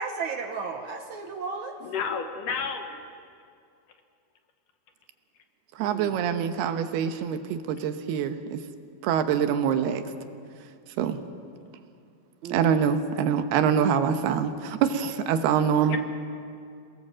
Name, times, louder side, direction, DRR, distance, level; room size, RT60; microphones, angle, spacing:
voice 1, 0.0-1.8 5.8-6.2 12.4-13.0, right 5 dB, 65° right, 5 dB, 2.0 m, -34 dB
voice 2, 1.9-3.0 15.9-16.0, left 6 dB, 65° left, 6 dB, 2.4 m, -31 dB
voice 3, 5.8-8.6 9.0-10.0 11.0-11.2 12.5-16.0, right 8 dB, 85° right, 8 dB, 3.1 m, -25 dB
27.5 x 19.0 x 7.5 m, 2.4 s
omnidirectional pair, 4.5 m